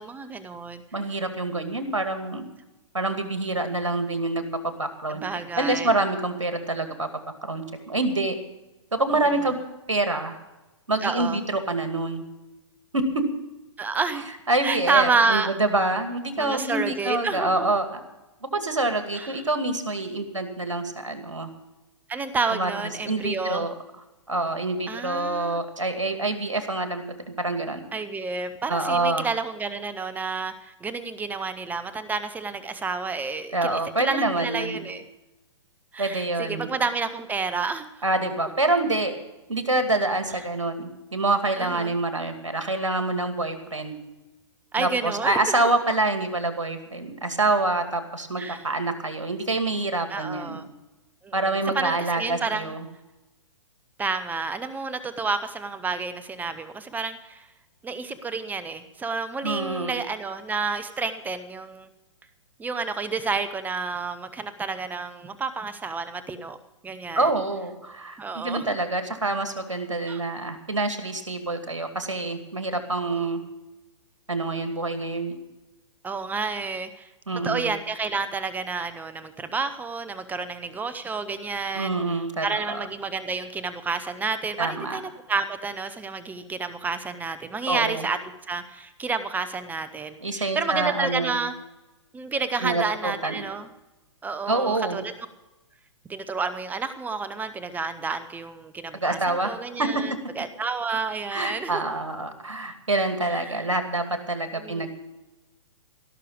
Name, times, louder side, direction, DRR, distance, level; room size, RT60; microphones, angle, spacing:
voice 1, 0.0-0.8 5.1-5.9 11.0-11.4 13.8-14.3 14.6-15.5 16.4-17.7 19.1-19.4 22.1-23.7 24.9-25.6 27.9-35.0 35.9-37.9 40.3-40.4 41.6-41.9 44.7-45.4 48.4-48.7 50.1-50.7 51.2-51.3 51.7-52.7 54.0-57.5 57.8-61.9 62.6-66.6 66.8-67.3 68.2-68.8 70.1-70.2 76.0-77.1 77.4-81.9 82.4-88.2 88.5-91.5 92.1-93.7 94.2-95.1 96.1-101.8 103.3-103.7 104.6-104.9, right 4 dB, 10° right, 12 dB, 0.8 m, -30 dB
voice 2, 0.9-2.4 2.9-5.2 5.6-7.1 7.4-8.4 8.9-9.6 9.9-10.4 10.9-12.2 12.9-13.0 14.5-18.0 18.5-21.5 22.5-22.7 23.0-23.7 24.3-27.8 28.7-29.3 33.5-34.8 36.0-36.7 38.0-39.1 39.5-44.0 44.8-50.6 51.3-52.8 59.4-60.0 67.1-73.4 74.3-75.4 77.3-77.7 81.7-82.8 84.6-85.0 87.7-88.1 90.2-91.4 92.6-93.4 94.5-95.0 99.0-99.5 99.8-99.9 101.3-104.9, right 2 dB, 90° right, 7 dB, 2.3 m, -26 dB
17.0 x 6.7 x 8.6 m, 1.0 s
hypercardioid pair, 125°, 16 cm